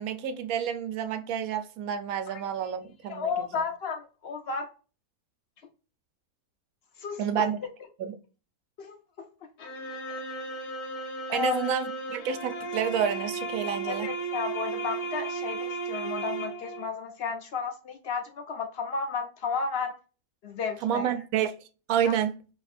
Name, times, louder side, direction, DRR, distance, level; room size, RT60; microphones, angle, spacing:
voice 1, 0.0-3.3 7.2-7.6 8.0-8.1 11.3-14.1 20.8-21.5 21.9-22.3, right 8 dB, 75° right, 1.0 m, -29 dB
voice 2, 3.1-4.7 7.0-7.5 8.8-9.0 11.3-11.7 13.9-19.9 20.4-21.2 22.0-22.1, left 5 dB, 70° left, 0.6 m, -33 dB
sound 1, 9.6-16.9, right 3 dB, 90° left, 1.3 m, -35 dB
2.9 x 2.5 x 4.1 m
omnidirectional pair, 1.6 m